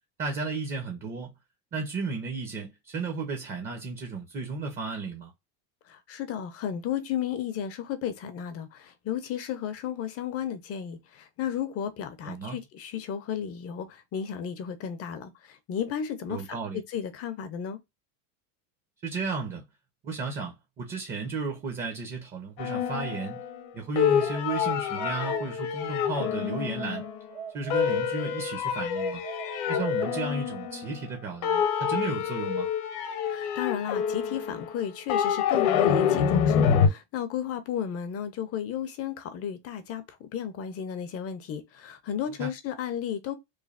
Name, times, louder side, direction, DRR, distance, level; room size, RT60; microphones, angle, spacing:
voice 1, 0.2-1.3 1.7-5.3 12.2-12.6 16.3-16.8 19.0-19.6 20.0-23.4 23.7-27.1 27.5-29.2 29.7-32.7 42.4-42.5, right 4 dB, 25° right, 0.5 m, -34 dB
voice 2, 5.9-17.8 33.2-43.3, left 9 dB, 35° left, 0.5 m, -34 dB
sound 1, 22.6-23.7 24.0-27.3 27.7-31.2 31.4-36.9, left 8 dB, 65° left, 0.8 m, -27 dB
sound 2, 24.2-26.0 26.5-28.4 28.9-30.8, right 7 dB, 80° right, 1.1 m, -42 dB
3.1 x 2.2 x 2.4 m
cardioid pair, 140°, 43 cm